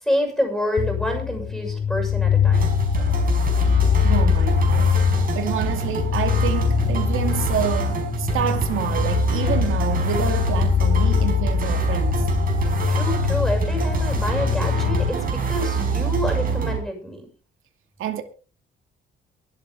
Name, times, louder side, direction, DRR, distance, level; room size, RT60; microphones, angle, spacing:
voice 1, 0.0-2.7 12.9-17.3, left 1 dB, ahead, 6.5 m, -27 dB
sound 1, 0.8-15.1, left 7 dB, 35° left, 1.1 m, -22 dB
sound 2, 2.5-16.8, right 5 dB, 45° right, 5.2 m, -26 dB
voice 2, 4.0-12.2 18.0-18.2, right 9 dB, 85° right, 2.3 m, -28 dB
23.0 x 8.7 x 3.7 m
cardioid pair, 145°, 20 cm